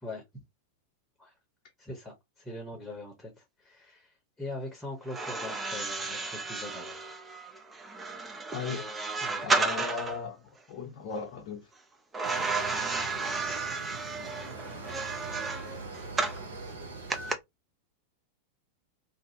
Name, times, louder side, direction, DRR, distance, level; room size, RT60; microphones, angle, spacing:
voice 1, 1.8-7.1 9.2-10.0, left 2 dB, 10° left, 0.9 m, -42 dB
sound 1, 5.1-10.2 12.1-16.4 17.1-17.3, right 3 dB, 15° right, 0.5 m, -32 dB
voice 2, 8.5-8.9 9.4-10.4 10.7-11.6, left 5 dB, 40° left, 0.7 m, -36 dB
sound 2, 12.2-17.3, right 3 dB, 70° right, 0.8 m, -42 dB
2.6 x 2.3 x 2.7 m
figure-of-eight pair, 90°, 0 cm